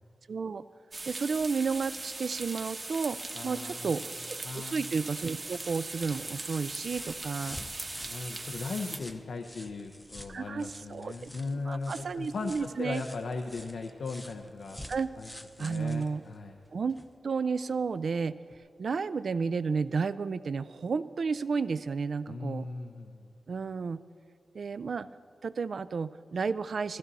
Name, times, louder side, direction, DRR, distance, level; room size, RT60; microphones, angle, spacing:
voice 1, 0.3-0.6 1.1-4.0 4.3-7.6 10.3-11.3 11.7-13.0 14.9-15.1 15.6-16.2 16.7-17.0 17.2-18.4 18.8-22.7 23.5-24.0 24.5-25.1 25.4-27.0, right 5 dB, 60° right, 15 dB, 0.3 m, -32 dB
sound 1, 0.9-9.0, right 2 dB, 35° right, 1.0 m, -40 dB
voice 2, 3.3-4.1 4.4-4.8 8.0-14.8 15.2-15.3 15.6-16.6 22.3-23.3, left 3 dB, 90° left, 5 dB, 0.7 m, -38 dB
sound 2, 5.2-17.2 18.5-18.6, equal, 10° left, 0.6 m, -49 dB
15.0 x 15.0 x 4.1 m, 2.2 s
wide cardioid pair, 140°, 0 cm